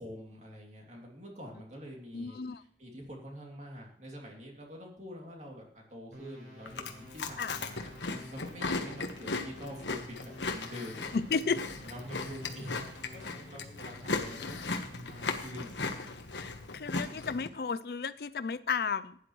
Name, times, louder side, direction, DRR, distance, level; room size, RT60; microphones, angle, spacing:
voice 1, 0.0-11.2 11.5-16.0, equal, 40° right, 0 dB, 2.8 m, -46 dB
voice 2, 2.1-2.6 7.4-7.6 11.1-11.6 16.3-19.2, left 5 dB, 60° left, 15 dB, 0.5 m, -33 dB
sound 1, 6.1-13.7, equal, 70° right, 4.7 m, -52 dB
Chewing mastication, 6.7-17.5, left 3 dB, 90° left, 1.3 m, -37 dB
15.5 x 10.0 x 3.2 m, 0.66 s
head